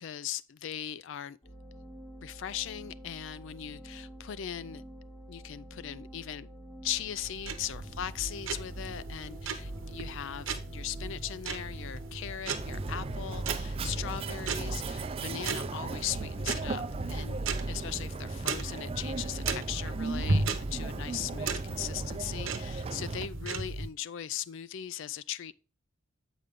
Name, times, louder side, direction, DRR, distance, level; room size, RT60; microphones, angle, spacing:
voice 1, 0.0-1.4 2.2-4.8 5.3-6.5 6.8-17.4 17.7-25.5, left 10 dB, 55° left, 0.3 m, -39 dB
sound 1, 1.4-13.0, right 1 dB, 15° left, 2.3 m, -49 dB
sound 2, 7.0-23.9, right 3 dB, 60° right, 0.8 m, -36 dB
Mechanisms, 12.5-23.3, right 3 dB, 25° right, 0.3 m, -37 dB
7.8 x 5.0 x 3.6 m
head